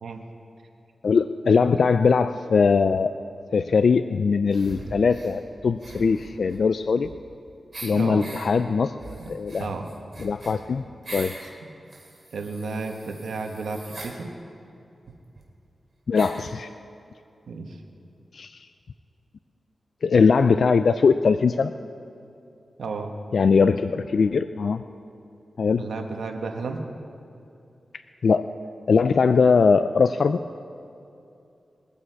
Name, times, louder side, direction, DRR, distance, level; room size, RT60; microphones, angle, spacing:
voice 1, 1.0-3.1 3.5-7.1 7.8-9.7 10.2-10.8 11.1-11.3 16.1-16.7 18.3-18.7 20.0-21.7 23.3-24.8 25.6-25.8 28.2-28.5 28.9-30.4, left 5 dB, 70° left, 11 dB, 0.3 m, -21 dB
sound 1, 4.5-5.3 5.8-7.4 7.7-8.5 9.0-11.5 11.9-14.2 15.1-15.2 15.4-15.5 16.1-16.5, right 2 dB, 50° right, 3.1 m, -41 dB
voice 2, 7.9-8.3 9.2-9.3 9.6-9.9 12.3-14.3 17.5-17.8 22.8-23.1 25.8-26.8, right 4 dB, 90° right, 4 dB, 1.2 m, -32 dB
22.0 x 8.5 x 4.7 m, 2.6 s
cardioid pair, 65°, 0 cm